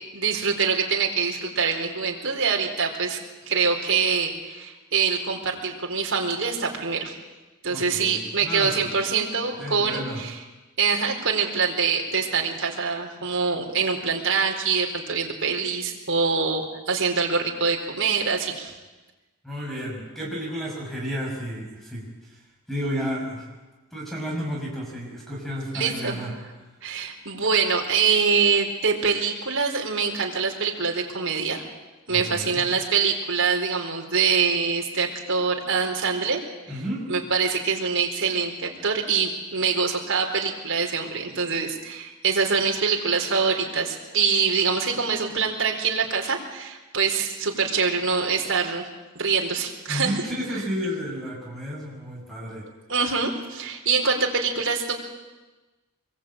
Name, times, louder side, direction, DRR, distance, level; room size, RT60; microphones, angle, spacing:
voice 1, 0.1-3.2 3.4-7.1 7.6-10.4 10.8-18.7 25.7-26.2 26.8-31.6 32.1-36.4 36.7-36.8 37.1-48.8 49.1-50.2 52.9-54.9, right 5 dB, 60° right, 1 dB, 4.3 m, -24 dB
voice 2, 7.7-8.9 9.6-10.2 19.4-22.1 22.7-23.5 23.9-26.3 32.1-32.6 36.7-37.1 49.9-52.7, equal, ahead, -1 dB, 6.4 m, -32 dB
24.5 x 22.5 x 8.9 m, 1.2 s
head